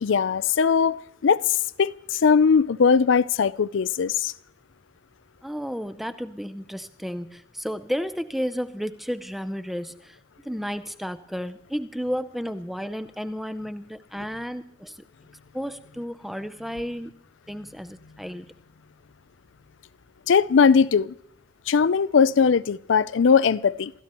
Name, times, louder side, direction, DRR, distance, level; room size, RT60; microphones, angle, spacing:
voice 1, 0.0-4.3 20.3-21.1 21.7-23.9, left 6 dB, 70° left, 0.4 m, -20 dB
voice 2, 5.4-10.2 10.4-15.1 15.5-17.1 17.5-18.5, equal, ahead, 0.5 m, -32 dB
27.5 x 14.0 x 3.0 m
head